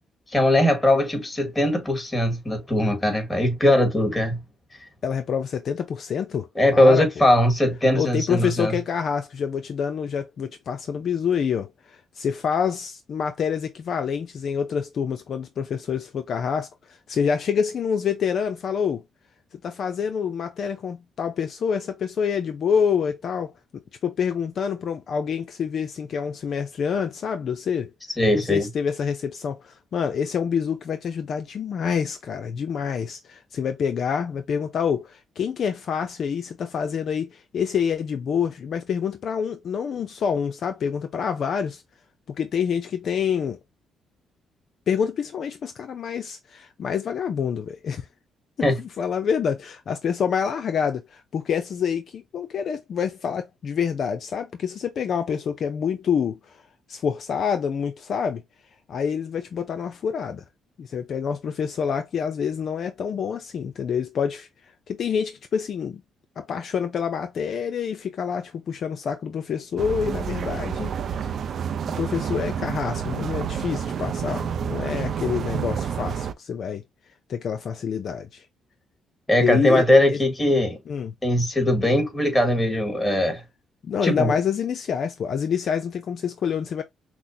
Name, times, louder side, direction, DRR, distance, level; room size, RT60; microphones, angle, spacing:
voice 1, 0.3-4.4 6.6-8.7 28.2-28.7 48.6-48.8 79.3-80.8 81.2-83.4 84.0-84.3, left 1 dB, 20° left, 2.0 m, -20 dB
voice 2, 5.0-7.1 8.0-19.0 19.6-27.9 28.3-41.8 42.4-43.6 44.9-48.1 48.6-56.6 56.9-58.4 58.9-60.4 60.8-64.5 64.9-66.0 66.4-71.3 72.0-76.8 77.3-78.5 79.4-80.2 80.9-81.1 83.8-86.8, left 7 dB, 60° left, 0.5 m, -27 dB
sound 1, 69.8-76.3, right 8 dB, 60° right, 0.5 m, -29 dB
6.0 x 2.0 x 2.7 m
cardioid pair, 90°, 0 cm